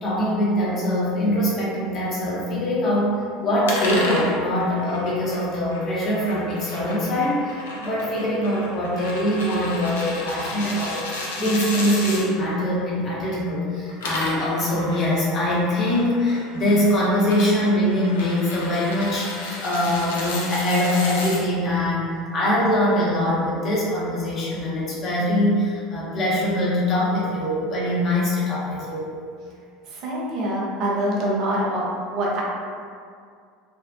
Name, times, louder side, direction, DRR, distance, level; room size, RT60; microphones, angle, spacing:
voice 1, 0.0-3.1 3.4-29.1, left 1 dB, 40° left, -6 dB, 0.8 m, -23 dB
sound 1, 3.7-12.3 13.8-21.4, left 2 dB, 75° left, 0.4 m, -33 dB
voice 2, 29.9-32.4, right 1 dB, 50° right, -4 dB, 0.6 m, -25 dB
2.5 x 2.0 x 2.5 m, 2.2 s
figure-of-eight pair, 75°, 0 cm